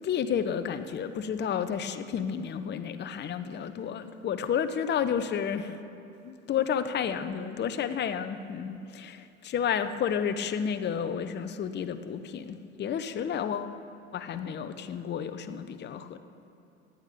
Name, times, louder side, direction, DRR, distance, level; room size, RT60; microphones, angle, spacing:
voice 1, 0.0-5.8 6.2-13.7 14.1-16.2, left 8 dB, 30° left, 10 dB, 0.9 m, -31 dB
16.5 x 10.5 x 6.8 m, 2.7 s
figure-of-eight pair, 70°, 36 cm